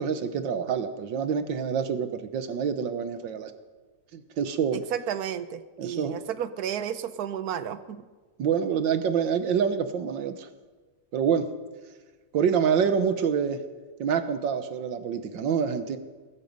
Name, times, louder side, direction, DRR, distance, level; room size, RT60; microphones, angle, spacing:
voice 1, 0.0-3.5 4.1-4.8 5.8-6.1 8.4-10.5 11.1-11.5 12.3-13.6 14.0-16.0, right 7 dB, 85° right, 10 dB, 1.7 m, -26 dB
voice 2, 4.7-8.0, right 9 dB, 65° right, 13 dB, 1.2 m, -32 dB
20.0 x 13.0 x 5.3 m, 1.3 s
omnidirectional pair, 1.9 m